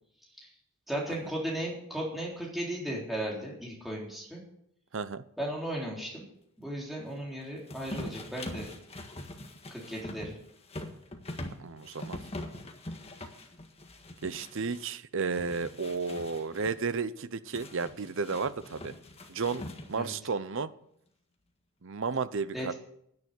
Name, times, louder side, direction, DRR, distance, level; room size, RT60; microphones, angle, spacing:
voice 1, 0.9-4.4 5.4-6.2 6.6-8.7 9.7-10.4 19.9-20.1 22.5-22.7, right 1 dB, ahead, -4 dB, 3.8 m, -36 dB
voice 2, 4.9-5.2 11.6-12.2 14.2-18.9 19.3-20.7 21.8-22.7, right 4 dB, 60° right, 14 dB, 0.7 m, -33 dB
sound 1, 7.7-14.8 15.2-16.8 17.5-20.1, left 1 dB, 25° left, 1.6 m, -43 dB
10.5 x 9.6 x 8.0 m, 0.72 s
head